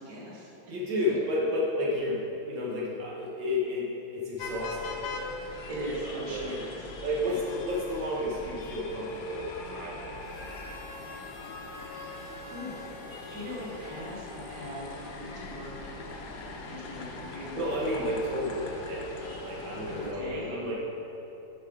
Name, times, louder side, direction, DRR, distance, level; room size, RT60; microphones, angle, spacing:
voice 1, 0.0-0.5 1.1-1.2 5.5-6.9 7.2-7.4 11.6-11.9 12.5-16.0 16.4-17.6 19.9-20.6, equal, 50° right, -4 dB, 1.8 m, -40 dB
voice 2, 0.7-5.0 6.0-6.5 7.0-10.1 17.5-20.8, left 1 dB, 75° right, -5 dB, 1.7 m, -31 dB
sound 1, 4.4-20.1, left 3 dB, 65° left, 1.2 m, -41 dB
Harmonica, 10.2-15.0, left 1 dB, 35° right, 1.9 m, -47 dB
7.2 x 6.1 x 4.9 m, 3.0 s
omnidirectional pair, 2.1 m